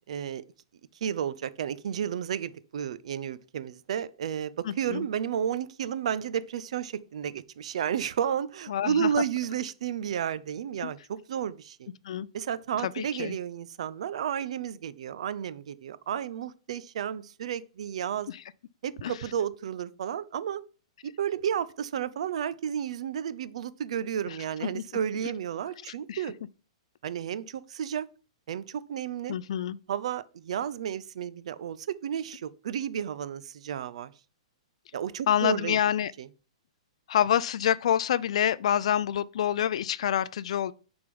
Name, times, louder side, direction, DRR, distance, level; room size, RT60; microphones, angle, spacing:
voice 1, 0.1-0.4 1.0-11.9 12.3-18.3 18.8-20.6 21.0-26.3 27.0-28.1 28.5-29.4 29.9-34.1 34.9-35.8 36.2-36.3, right 9 dB, 65° right, 0.5 m, -32 dB
voice 2, 4.6-5.0 8.7-9.1 10.8-10.9 12.0-12.3 12.8-13.4 18.3-18.4 19.0-19.1 24.3-24.4 24.7-24.8 26.1-26.2 29.3-29.8 35.3-36.1 37.1-40.7, left 10 dB, 65° left, 0.3 m, -27 dB
6.6 x 3.5 x 5.3 m
hypercardioid pair, 150°, 4 cm